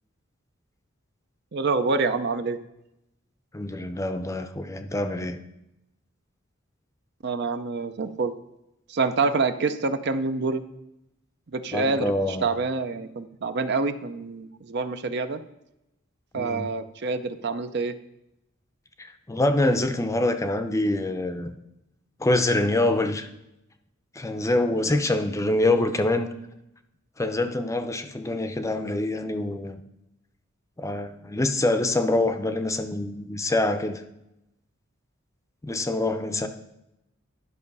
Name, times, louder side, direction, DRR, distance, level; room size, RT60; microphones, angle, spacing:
voice 1, 1.5-2.6 7.2-8.3 8.9-10.6 11.5-15.4 16.3-17.9, right 4 dB, 60° right, 10 dB, 0.6 m, -27 dB
voice 2, 3.5-5.4 11.7-12.5 16.3-16.7 19.0-21.6 22.2-23.3 24.2-26.3 27.2-29.8 30.8-34.0 35.6-36.5, left 2 dB, 15° left, 8 dB, 0.5 m, -25 dB
11.0 x 5.4 x 5.4 m, 0.87 s
head